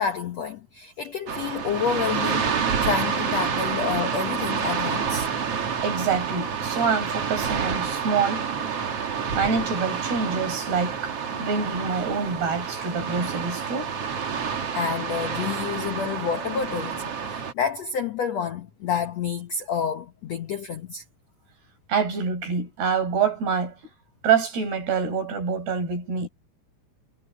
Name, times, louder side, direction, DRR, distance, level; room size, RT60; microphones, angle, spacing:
voice 1, 0.0-2.5 2.8-5.3 14.7-21.0, left 7 dB, 75° left, 1.6 m, -29 dB
sound 1, 1.3-17.5, right 6 dB, 45° right, 2.5 m, -28 dB
voice 2, 5.8-8.5 9.3-13.9 21.9-23.8 24.2-26.3, right 6 dB, 75° right, 8.4 m, -26 dB
omnidirectional pair, 4.6 m